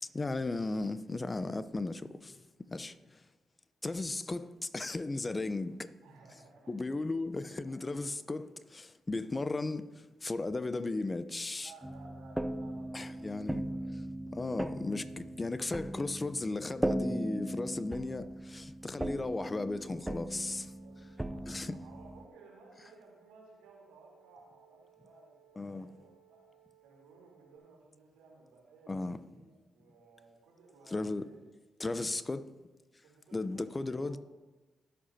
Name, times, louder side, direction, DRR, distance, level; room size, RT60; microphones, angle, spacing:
voice 1, 0.0-2.4 2.7-2.9 3.8-5.9 6.7-9.8 10.2-11.7 12.9-13.6 14.3-20.7 21.5-21.7 25.6-25.9 28.9-29.2 30.9-31.2 31.8-32.4 33.3-34.2, left 2 dB, 30° left, 0.7 m, -35 dB
voice 2, 6.0-7.0 7.4-8.0 11.6-13.8 17.8-18.4 18.8-18.9 20.7-26.5 26.8-31.5 31.9-32.4 33.0-34.2, right 3 dB, 90° right, 3.5 m, -58 dB
sound 1, 11.8-22.3, right 1 dB, 10° right, 0.6 m, -38 dB
sound 2, 19.4-27.6, right 11 dB, 30° right, 3.6 m, -65 dB
19.0 x 7.8 x 2.9 m
supercardioid pair, 50°, 0 cm